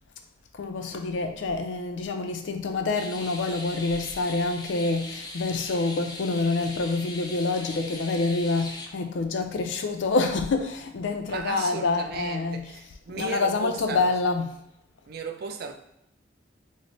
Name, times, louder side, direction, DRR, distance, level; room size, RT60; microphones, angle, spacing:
voice 1, 0.6-12.6 13.2-14.5, left 3 dB, 80° left, 0.4 m, -27 dB
sound 1, 2.9-8.9, left 2 dB, 20° left, 0.4 m, -40 dB
voice 2, 11.3-14.1 15.1-15.7, right 5 dB, 55° right, 0.4 m, -36 dB
3.1 x 2.0 x 4.0 m
head